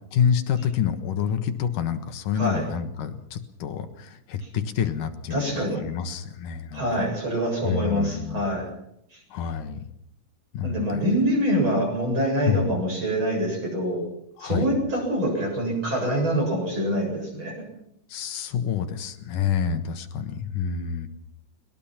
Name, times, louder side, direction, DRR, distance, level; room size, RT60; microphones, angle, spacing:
voice 1, 0.1-7.1 7.6-8.6 9.3-9.9 10.5-11.1 12.4-12.7 14.4-14.7 18.1-21.1, left 8 dB, 90° left, 7 dB, 3.1 m, -28 dB
voice 2, 2.3-2.7 5.3-5.8 6.7-8.7 10.6-14.0 14.4-17.6, equal, 40° right, 1 dB, 8.2 m, -25 dB
22.5 x 21.0 x 5.9 m, 0.77 s
omnidirectional pair, 3.6 m